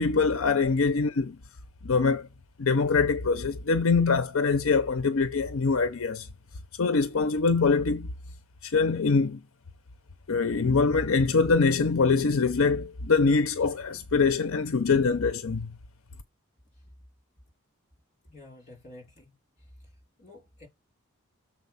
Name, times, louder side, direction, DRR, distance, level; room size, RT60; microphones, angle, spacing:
voice 1, 0.0-1.4 1.8-2.3 2.6-6.3 6.8-8.1 8.6-9.4 10.3-15.7, left 4 dB, 70° left, 0.6 m, -24 dB
voice 2, 18.2-19.3 20.2-20.7, left 2 dB, 35° left, 3.5 m, -50 dB
7.1 x 4.2 x 5.6 m
head